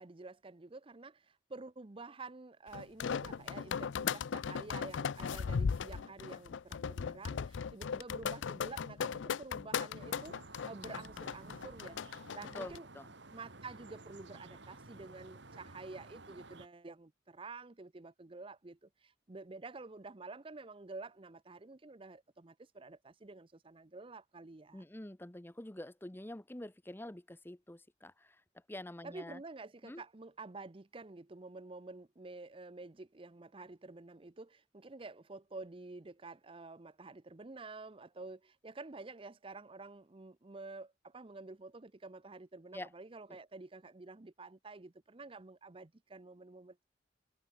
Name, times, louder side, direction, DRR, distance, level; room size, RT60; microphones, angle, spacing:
voice 1, 0.0-10.4 10.6-12.0 12.3-12.9 13.3-24.9 29.0-46.8, right 3 dB, 30° right, 0.7 m, -49 dB
sound 1, 2.7-12.8, left 6 dB, 90° left, 0.4 m, -37 dB
sound 2, 10.0-16.7, right 2 dB, 75° right, 2.7 m, -53 dB
voice 2, 12.5-13.1 24.7-28.4 28.7-29.4 29.8-30.0 42.7-42.9, left 1 dB, 10° left, 0.8 m, -46 dB
head